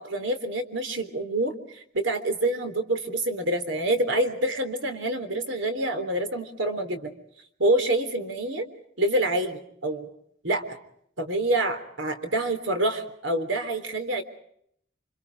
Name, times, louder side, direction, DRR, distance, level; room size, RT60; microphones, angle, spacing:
voice 1, 0.0-7.1 7.6-8.7 9.0-10.1 10.4-10.6 11.2-14.2, right 1 dB, 70° right, 7 dB, 3.6 m, -27 dB
29.5 x 26.0 x 4.9 m, 0.70 s
head